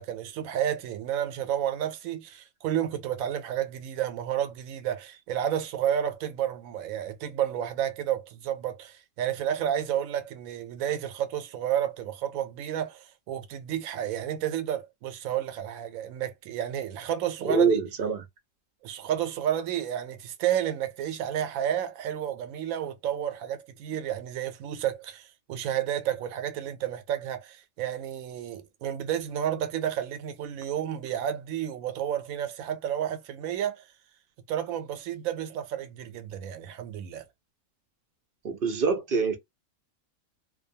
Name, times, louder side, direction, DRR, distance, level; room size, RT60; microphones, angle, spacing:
voice 1, 0.0-17.7 18.8-33.8 34.5-37.3, right 10 dB, 90° right, 1.0 m, -31 dB
voice 2, 17.4-18.2 38.4-39.4, right 5 dB, 55° right, 0.7 m, -25 dB
2.6 x 2.3 x 2.6 m
omnidirectional pair, 1.4 m